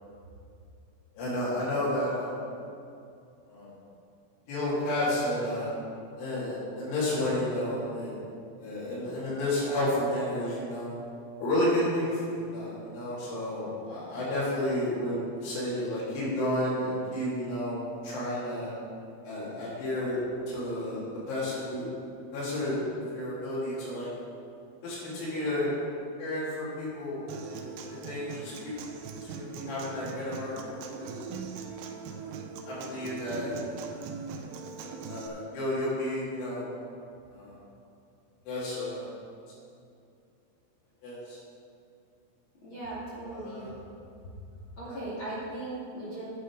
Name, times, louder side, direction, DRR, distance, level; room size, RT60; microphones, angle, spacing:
voice 1, 1.2-2.4 3.5-3.7 4.5-5.7 6.2-8.2 8.6-10.9 11.4-18.7 19.2-20.2 20.5-21.9 22.3-24.1 24.8-25.7 26.2-27.6 28.1-28.7 29.3-30.6 31.0-31.1 32.1-32.2 32.7-33.9 35.1-36.7 37.3-37.6 38.5-39.1 41.0-41.4 43.3-43.8 44.9-45.0, left 1 dB, 90° left, -10 dB, 5.7 m, -31 dB
Human voice / Acoustic guitar, 27.3-35.3, right 5 dB, 75° right, 2.6 m, -41 dB
voice 2, 42.6-43.6 44.8-46.3, right 2 dB, 35° left, -9 dB, 2.5 m, -38 dB
11.0 x 8.6 x 4.9 m, 2.5 s
omnidirectional pair, 5.3 m